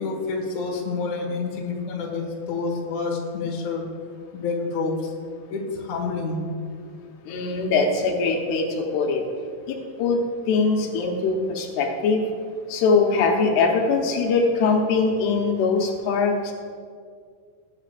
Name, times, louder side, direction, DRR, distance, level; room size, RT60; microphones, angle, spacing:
voice 1, 0.0-3.8 4.3-5.1 5.5-6.4, left 4 dB, 55° left, -1 dB, 2.5 m, -28 dB
voice 2, 7.3-9.2 9.7-10.2 10.5-12.3 12.7-16.5, left 4 dB, 85° left, 1 dB, 3.2 m, -22 dB
20.5 x 8.7 x 2.5 m, 2.1 s
omnidirectional pair, 4.5 m